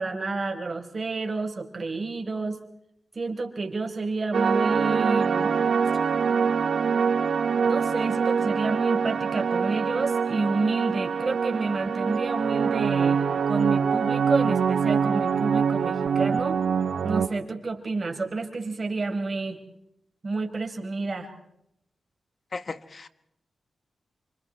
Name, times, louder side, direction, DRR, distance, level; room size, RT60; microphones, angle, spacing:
voice 1, 0.0-2.6 3.1-5.5 7.6-16.6 17.0-19.6 20.2-21.3, right 3 dB, 45° right, 4 dB, 4.9 m, -29 dB
sound 1, 4.3-17.3, right 6 dB, 75° right, 1.1 m, -24 dB
voice 2, 22.5-23.1, left 4 dB, 50° left, 13 dB, 1.4 m, -36 dB
28.0 x 26.0 x 4.5 m, 0.76 s
cardioid pair, 55°, 0 cm